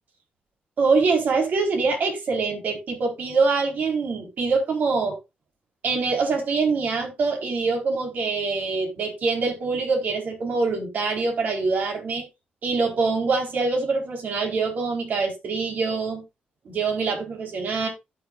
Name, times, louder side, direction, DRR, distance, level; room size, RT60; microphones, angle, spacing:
voice 1, 0.8-5.2 5.8-12.2 12.6-16.2 16.6-17.9, right 4 dB, 60° right, 4.3 m, -24 dB
16.0 x 6.8 x 2.5 m
wide cardioid pair, 145°, 3 cm